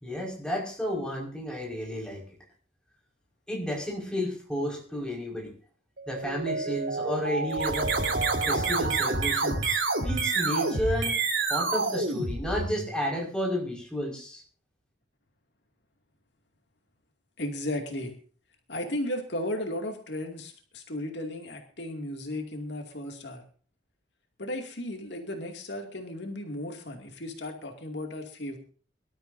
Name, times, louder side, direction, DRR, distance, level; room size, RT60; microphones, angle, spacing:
voice 1, 0.0-2.3 3.5-5.5 6.1-7.9 8.5-11.2 11.5-14.4, equal, 5° left, -2 dB, 5.2 m, -32 dB
Mallet percussion, 6.0-10.9, right 3 dB, 60° right, 1.1 m, -34 dB
sound 1, 7.5-13.0, right 3 dB, 85° right, 3.5 m, -28 dB
voice 2, 17.4-18.1 18.7-23.4 24.4-28.6, left 1 dB, 65° left, 3 dB, 2.5 m, -35 dB
24.0 x 13.0 x 2.7 m, 0.43 s
head